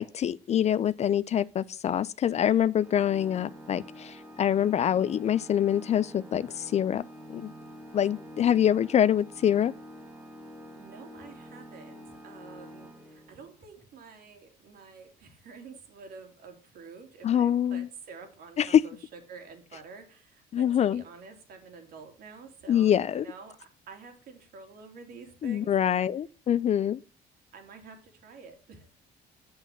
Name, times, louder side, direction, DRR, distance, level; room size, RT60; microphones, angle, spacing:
voice 1, 0.0-7.5 7.9-9.7 17.2-17.9 18.6-18.8 20.5-21.0 22.7-23.2 25.4-27.0, left 10 dB, 40° left, 0.4 m, -25 dB
Organ, 2.8-13.6, equal, 5° right, 1.9 m, -47 dB
voice 2, 10.8-26.1 27.5-28.9, right 4 dB, 65° right, 2.7 m, -48 dB
7.9 x 7.0 x 5.6 m
cardioid pair, 110°, 17 cm